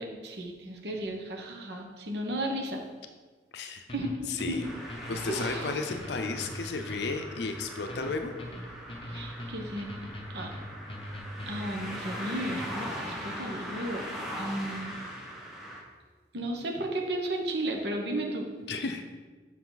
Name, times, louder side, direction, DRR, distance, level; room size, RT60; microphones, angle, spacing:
voice 1, 0.0-2.8 3.9-4.6 5.3-5.7 9.1-9.9 10.3-10.5 11.5-12.9 13.2-14.0 14.4-14.9 16.3-18.4, right 1 dB, 65° right, 1 dB, 1.0 m, -34 dB
voice 2, 3.5-3.8 4.3-4.7 5.1-8.3 18.7-19.0, left 4 dB, 70° left, 6 dB, 0.5 m, -33 dB
sound 1, 3.9-11.8, left 1 dB, 30° left, 0.8 m, -42 dB
sound 2, 4.6-15.8, equal, ahead, 1.5 m, -40 dB
7.1 x 6.0 x 3.9 m, 1.4 s
head